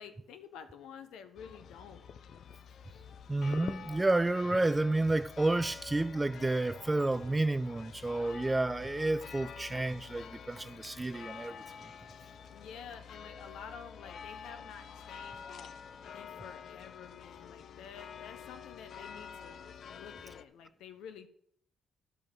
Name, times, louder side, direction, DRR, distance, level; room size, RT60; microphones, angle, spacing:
voice 1, 0.0-2.1 12.5-15.7 16.1-21.3, left 7 dB, 85° left, 1.1 m, -50 dB
sound 1, 1.4-20.4, left 7 dB, 65° left, 0.6 m, -48 dB
voice 2, 3.3-11.6, right 2 dB, 15° right, 0.4 m, -30 dB
12.5 x 5.1 x 6.3 m
cardioid pair, 90°, 0 cm